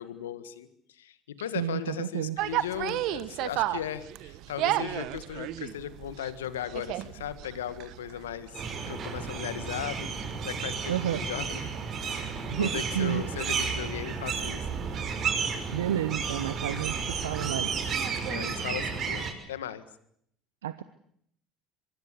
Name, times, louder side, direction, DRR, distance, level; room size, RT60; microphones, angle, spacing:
voice 1, 0.0-10.1 10.4-11.7 12.0-12.2 12.5-14.7 18.2-19.8, left 10 dB, 85° left, 13 dB, 1.7 m, -37 dB
voice 2, 1.5-2.4 10.9-11.2 12.5-13.2 15.7-16.9 17.2-17.8 20.6-20.8, right 11 dB, 85° right, 13 dB, 0.9 m, -30 dB
sound 1, 2.4-18.6, right 15 dB, 65° right, 1.3 m, -37 dB
sound 2, 8.5-19.3, right 5 dB, 50° right, 6.1 m, -32 dB
24.5 x 22.0 x 8.3 m, 0.69 s
hypercardioid pair, 70°, 0 cm